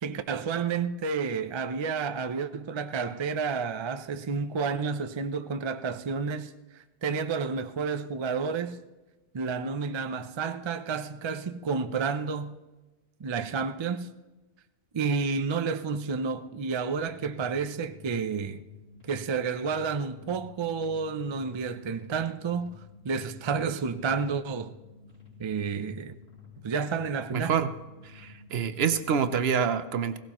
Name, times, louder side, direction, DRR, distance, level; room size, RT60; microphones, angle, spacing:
voice 1, 0.0-6.5 7.0-8.8 9.3-12.6 13.2-14.1 14.9-18.6 19.1-22.8 23.0-24.7 25.4-26.1 26.6-27.6, right 5 dB, 45° right, 0.3 m, -30 dB
sound 1, 17.0-29.2, left 5 dB, 65° left, 3.9 m, -51 dB
voice 2, 27.3-27.7 28.1-30.2, right 7 dB, 65° right, 0.9 m, -27 dB
17.0 x 17.0 x 3.0 m
omnidirectional pair, 1.2 m